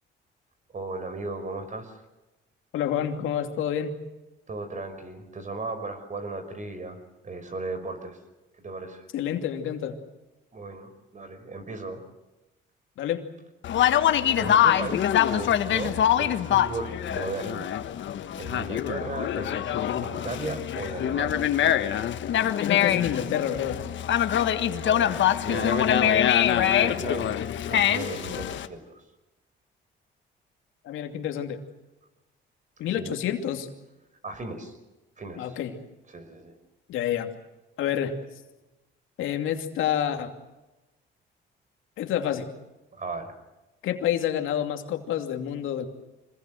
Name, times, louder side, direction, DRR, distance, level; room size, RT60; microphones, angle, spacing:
voice 1, 0.7-2.0 4.5-8.2 8.5-9.1 10.5-12.0 14.4-17.8 18.4-21.5 24.5-27.3 27.7-29.0 33.0-33.1 34.2-34.8 35.2-35.5 36.1-36.6 42.9-43.3, right 3 dB, 40° right, 9 dB, 5.6 m, -36 dB
voice 2, 2.7-3.9 9.1-10.0 13.0-13.2 22.6-23.8 30.8-31.6 32.8-33.7 35.4-35.7 36.9-37.3 37.8-38.1 39.2-40.3 42.0-42.5 43.8-45.9, left 10 dB, 85° left, 5 dB, 2.8 m, -28 dB
Conversation, 13.6-28.7, left 10 dB, 70° left, 1.5 m, -24 dB
26.0 x 20.5 x 7.9 m, 1.0 s
cardioid pair, 90°, 20 cm